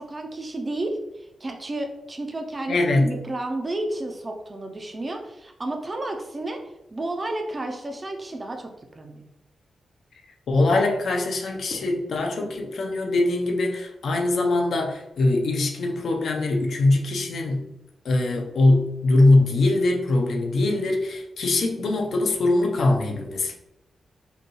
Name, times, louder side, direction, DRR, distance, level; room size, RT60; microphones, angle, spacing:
voice 1, 0.0-6.6 6.9-9.3, right 2 dB, 20° right, 4 dB, 0.5 m, -32 dB
voice 2, 2.7-3.1 10.5-17.7 18.0-23.5, left 2 dB, 60° left, 2 dB, 0.7 m, -22 dB
5.2 x 2.3 x 3.1 m, 0.90 s
wide cardioid pair, 180°, 0 cm